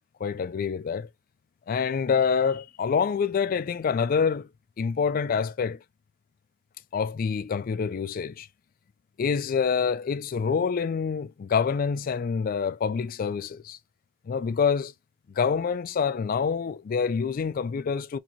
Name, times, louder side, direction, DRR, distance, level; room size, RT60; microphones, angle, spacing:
voice 1, 0.2-1.1 1.7-4.5 4.8-5.8 6.9-8.5 9.2-13.8 14.3-14.9 15.4-18.2, left 6 dB, 45° left, 0.3 m, -26 dB
4.4 x 2.7 x 2.9 m
head